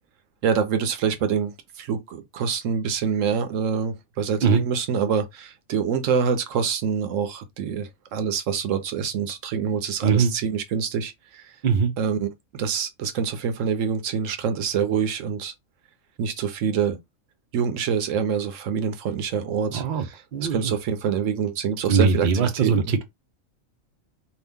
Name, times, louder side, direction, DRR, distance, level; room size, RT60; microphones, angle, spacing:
voice 1, 0.4-11.5 12.0-15.5 16.2-17.0 17.5-20.2 20.5-22.7, right 7 dB, 75° right, 1.0 m, -26 dB
voice 2, 10.0-10.3 11.6-11.9 19.7-20.0 20.3-20.7 21.9-23.0, right 5 dB, 50° right, 0.6 m, -21 dB
2.8 x 2.5 x 3.5 m
omnidirectional pair, 1.4 m